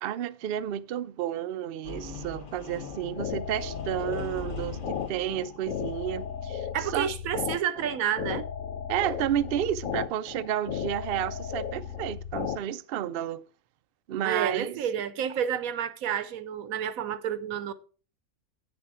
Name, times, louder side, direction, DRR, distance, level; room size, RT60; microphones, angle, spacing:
voice 1, 0.0-7.1 8.9-13.4 14.1-14.8, right 11 dB, 65° right, 0.6 m, -31 dB
sound 1, 1.8-6.7, left 3 dB, 40° left, 1.3 m, -42 dB
sound 2, 2.8-12.6, left 8 dB, 70° left, 1.1 m, -35 dB
voice 2, 6.7-8.5 14.2-17.7, right 9 dB, 85° right, 1.2 m, -30 dB
8.7 x 6.9 x 4.8 m
omnidirectional pair, 1.4 m